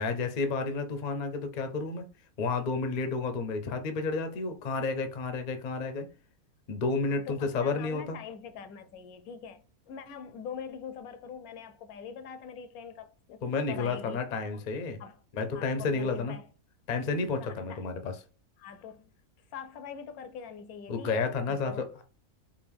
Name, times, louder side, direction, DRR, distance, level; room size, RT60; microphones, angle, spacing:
voice 1, 0.0-2.1 2.4-6.1 6.7-8.2 13.4-15.0 15.3-16.4 16.9-18.1 20.9-22.0, left 4 dB, 50° left, 0.5 m, -31 dB
voice 2, 7.1-13.4 13.7-14.6 15.0-15.2 15.5-16.5 17.4-17.8 18.6-19.1 19.5-21.2 21.5-21.8, left 7 dB, 80° left, 1.0 m, -44 dB
4.7 x 2.6 x 3.4 m
omnidirectional pair, 1.5 m